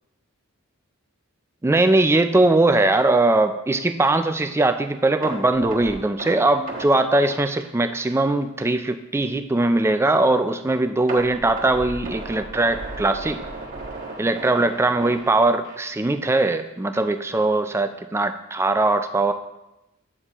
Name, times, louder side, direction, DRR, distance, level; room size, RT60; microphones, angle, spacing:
voice 1, 1.6-13.4 14.2-19.3, right 2 dB, 10° right, 8 dB, 0.3 m, -20 dB
sound 1, 5.2-8.3 8.6-8.7 9.2-9.3 11.1-16.0 16.3-16.5 16.9-17.0, right 2 dB, 40° right, 1.5 m, -35 dB
8.5 x 6.7 x 3.0 m, 0.94 s
head